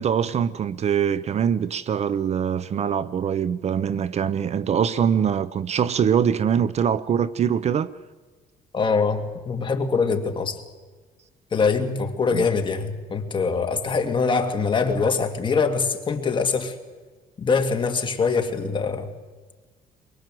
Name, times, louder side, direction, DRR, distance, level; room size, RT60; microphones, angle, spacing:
voice 1, 0.0-7.9 12.3-12.5, right 8 dB, 45° right, 0.7 m, -23 dB
voice 2, 8.7-10.6 11.5-16.7 17.4-19.1, left 5 dB, 30° left, 2.3 m, -23 dB
23.0 x 22.5 x 7.7 m
cardioid pair, 130°, 16 cm